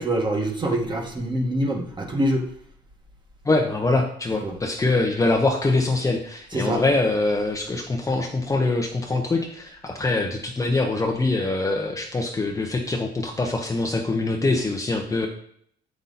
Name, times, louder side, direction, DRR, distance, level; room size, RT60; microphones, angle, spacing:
voice 1, 0.0-2.4 4.4-4.5 6.5-6.8, right 1 dB, 25° right, 1 dB, 1.5 m, -25 dB
voice 2, 3.4-15.3, left 2 dB, 15° left, 2 dB, 0.8 m, -24 dB
8.0 x 5.6 x 4.1 m, 0.64 s
cardioid pair, 135°, 19 cm